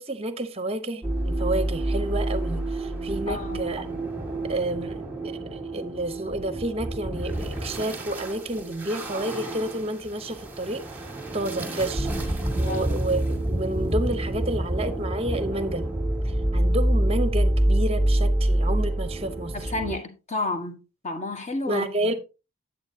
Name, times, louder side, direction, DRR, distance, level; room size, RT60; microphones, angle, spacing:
voice 1, 0.0-3.8 4.4-11.0 11.3-15.9 16.2-19.7 21.7-22.1, right 1 dB, 25° right, 0.8 m, -30 dB
sound 1, 1.0-20.0, right 1 dB, 10° right, 1.9 m, -27 dB
voice 2, 3.3-3.8 12.6-12.9 19.5-20.8 21.0-22.1, left 2 dB, 30° left, 1.4 m, -31 dB
9.5 x 8.0 x 2.8 m
head